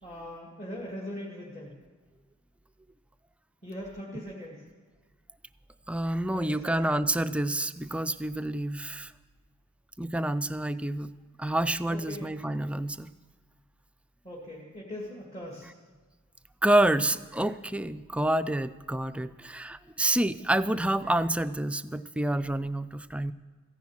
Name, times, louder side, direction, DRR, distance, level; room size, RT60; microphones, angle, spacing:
voice 1, 0.0-1.8 3.6-4.6 6.3-7.1 11.9-12.3 14.2-15.7, left 1 dB, 35° left, -4 dB, 2.0 m, -41 dB
voice 2, 5.9-9.1 10.0-11.1 11.4-13.1 16.6-23.3, right 1 dB, 5° right, 12 dB, 0.3 m, -28 dB
15.0 x 10.5 x 7.2 m, 1.4 s
head